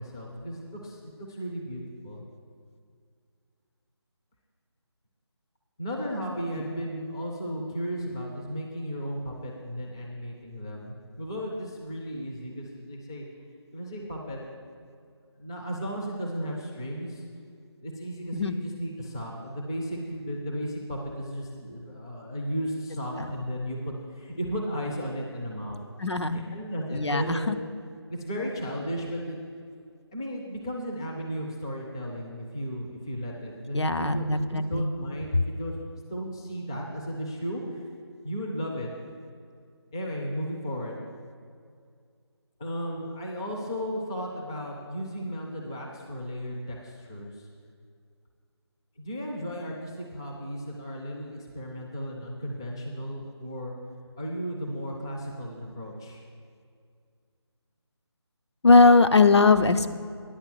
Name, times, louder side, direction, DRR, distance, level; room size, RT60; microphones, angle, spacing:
voice 1, 0.0-2.2 5.8-13.3 13.7-14.4 15.4-17.2 17.8-25.8 26.3-27.6 28.1-29.4 30.1-35.8 36.1-37.8 38.2-38.9 39.9-41.0 42.6-47.5 49.0-53.7 54.2-56.2, equal, 10° left, -1 dB, 0.4 m, -35 dB
voice 2, 26.0-26.4 26.9-27.6 33.7-34.9 58.6-59.9, left 3 dB, 70° left, 8 dB, 0.6 m, -20 dB
9.7 x 5.8 x 7.6 m, 2.2 s
figure-of-eight pair, 160°, 15 cm